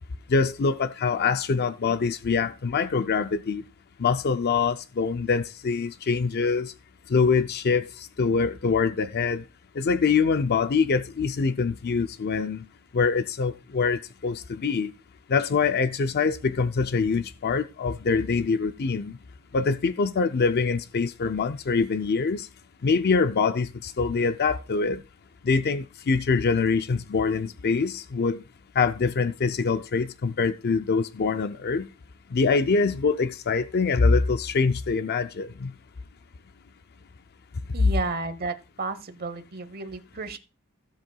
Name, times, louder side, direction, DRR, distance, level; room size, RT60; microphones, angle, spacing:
voice 1, 0.3-3.6 4.0-6.7 7.1-9.4 9.8-12.6 12.9-14.9 15.3-19.1 19.5-22.5 22.8-25.0 25.4-28.4 28.8-31.9 32.3-35.7, left 5 dB, 50° left, 0.5 m, -24 dB
voice 2, 37.7-40.4, right 3 dB, 45° right, 1.0 m, -32 dB
15.5 x 7.5 x 2.3 m
head